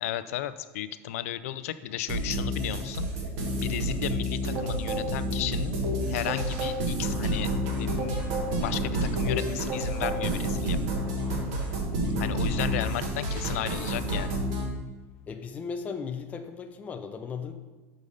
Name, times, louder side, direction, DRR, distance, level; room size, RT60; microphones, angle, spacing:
voice 1, 0.0-3.1 3.6-5.8 6.1-7.5 7.8-8.3 8.6-10.8 12.2-14.4, left 12 dB, 80° left, 13 dB, 0.5 m, -34 dB
sound 1, 2.1-14.6, right 1 dB, 55° right, 1.7 m, -29 dB
voice 2, 15.3-17.5, left 5 dB, 20° left, 6 dB, 0.4 m, -36 dB
6.5 x 5.1 x 5.5 m, 1.2 s
supercardioid pair, 140°, 8 cm